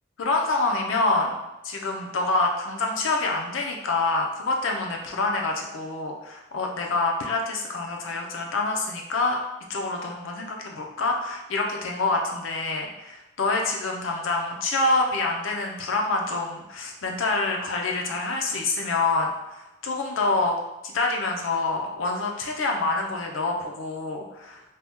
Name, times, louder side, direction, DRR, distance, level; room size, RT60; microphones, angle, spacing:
voice 1, 0.2-1.4 1.6-9.4 9.7-20.5 20.8-24.6, left 3 dB, 80° left, 1 dB, 0.5 m, -26 dB
2.7 x 2.2 x 3.4 m, 0.97 s
head